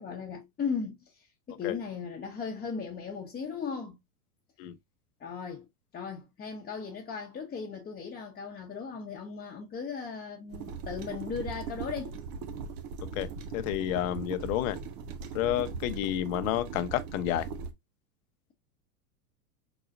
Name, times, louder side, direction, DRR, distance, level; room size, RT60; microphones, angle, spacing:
voice 1, 0.0-4.0 5.2-5.7 5.9-12.2, left 6 dB, 20° left, 1.0 m, -37 dB
sound 1, 10.5-17.7, right 5 dB, 50° right, 1.0 m, -39 dB
voice 2, 13.1-14.8 15.3-17.5, left 13 dB, 60° left, 0.8 m, -30 dB
4.7 x 4.1 x 2.5 m
hypercardioid pair, 105°, 46 cm